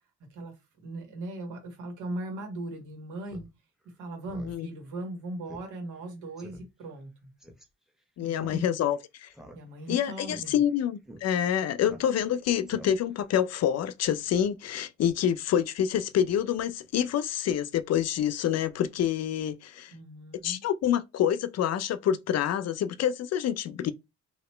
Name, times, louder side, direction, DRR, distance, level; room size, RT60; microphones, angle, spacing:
voice 1, 0.3-3.5 4.0-7.3 8.2-8.7 9.5-10.6 19.9-20.6, right 1 dB, 80° right, 1.7 m, -39 dB
Speech synthesizer, 3.3-3.5 3.8-3.9 4.2-4.6 4.9-5.0 5.5-5.7 6.0-6.1 6.4-6.6 7.4-7.7 8.4-8.9 9.3-9.9 10.2-10.4 11.1-11.2 11.8-12.3 12.7-13.2, equal, ahead, 0.9 m, -47 dB
voice 2, 8.2-9.3 9.9-19.9 20.4-23.9, left 9 dB, 55° left, 0.5 m, -27 dB
2.9 x 2.7 x 3.2 m
cardioid pair, 90°, 30 cm